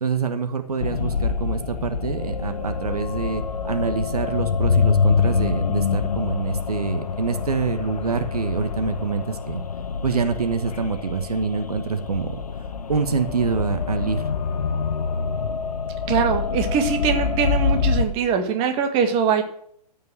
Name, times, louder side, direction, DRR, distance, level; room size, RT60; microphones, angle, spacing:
voice 1, 0.0-9.6 10.0-12.4 12.9-14.3, right 5 dB, 65° right, 8 dB, 1.3 m, -26 dB
sound 1, 0.8-18.1, left 5 dB, 65° left, 1.0 m, -25 dB
voice 2, 16.1-19.4, right 7 dB, 25° right, 5 dB, 1.7 m, -22 dB
14.0 x 5.4 x 7.7 m, 0.66 s
figure-of-eight pair, 120°, 21 cm